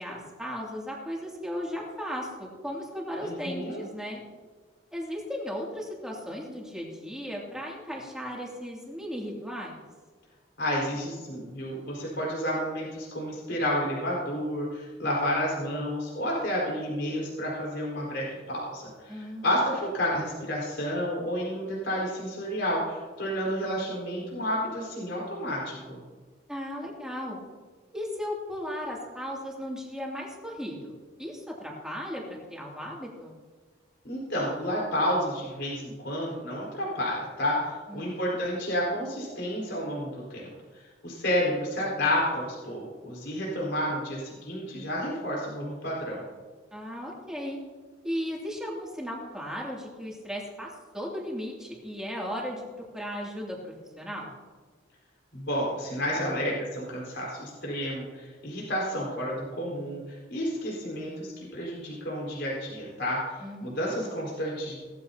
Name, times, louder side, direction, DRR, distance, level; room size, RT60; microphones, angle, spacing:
voice 1, 0.0-4.2 4.9-9.8 19.1-19.5 26.5-27.4 27.9-30.9 31.2-33.3 37.9-38.4 46.7-47.6 48.0-54.3 63.4-63.9, equal, 5° right, -3 dB, 2.7 m, -36 dB
voice 2, 3.2-3.8 10.6-26.0 34.0-40.5 41.0-46.2 55.3-64.8, equal, 65° left, -5 dB, 4.7 m, -30 dB
18.0 x 14.5 x 2.9 m, 1.4 s
head